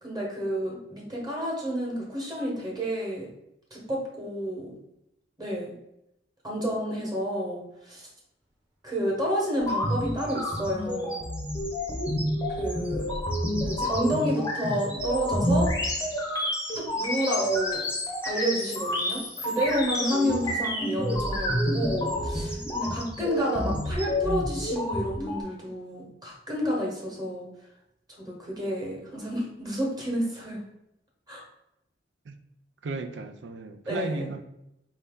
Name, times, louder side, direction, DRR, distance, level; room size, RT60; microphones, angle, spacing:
voice 1, 0.0-3.3 3.7-4.7 5.4-5.7 6.4-8.1 8.8-11.1 12.6-13.1 13.6-15.7 16.7-17.9 18.2-27.5 28.2-30.6 31.3-31.4 33.9-34.3, equal, 25° right, -3 dB, 1.1 m, -30 dB
sound 1, 9.5-20.6 20.8-24.1, right 1 dB, 5° right, 0.8 m, -42 dB
sound 2, 9.6-25.4, equal, 20° left, 0.7 m, -29 dB
voice 2, 32.8-34.4, right 3 dB, 85° right, 8 dB, 0.4 m, -35 dB
4.3 x 2.7 x 3.6 m, 0.83 s
head